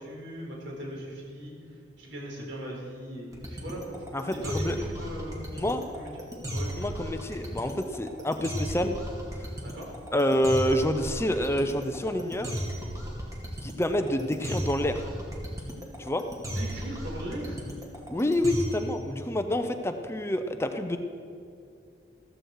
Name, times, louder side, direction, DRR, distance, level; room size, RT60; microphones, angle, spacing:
voice 1, 0.0-1.5 2.0-4.0 4.4-5.4 5.9-6.7 9.6-9.9 16.5-17.6, right 1 dB, 80° right, -2 dB, 4.2 m, -39 dB
sound 1, 3.3-19.0, equal, 20° right, 2.2 m, -35 dB
voice 2, 4.1-4.7 5.5-5.8 6.8-9.0 9.4-9.5 10.1-12.5 13.6-15.0 16.0-16.2 18.1-21.0, left 1 dB, 15° left, 7 dB, 0.6 m, -28 dB
14.5 x 14.0 x 4.7 m, 2.4 s
head